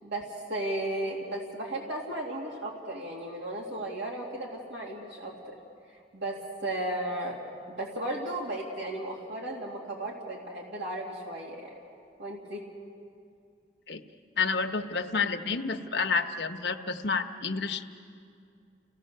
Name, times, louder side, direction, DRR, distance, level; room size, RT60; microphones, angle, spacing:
voice 1, 0.0-5.5 6.1-7.4 7.7-11.7 12.2-12.6, right 1 dB, 80° right, -2 dB, 2.5 m, -35 dB
voice 2, 14.4-17.8, left 4 dB, 75° left, 6 dB, 1.1 m, -29 dB
30.0 x 17.0 x 6.6 m, 2.4 s
head